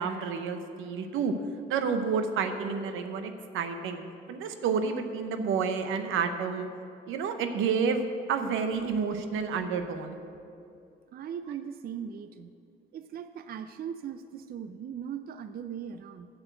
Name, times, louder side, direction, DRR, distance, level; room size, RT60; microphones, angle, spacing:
voice 1, 0.0-1.3 1.7-6.7 7.1-10.2, right 5 dB, 90° right, 8 dB, 0.8 m, -30 dB
voice 2, 11.1-12.5 12.9-16.3, right 8 dB, 50° right, 10 dB, 0.4 m, -39 dB
7.7 x 7.0 x 7.9 m, 2.7 s
cardioid pair, 90°, 20 cm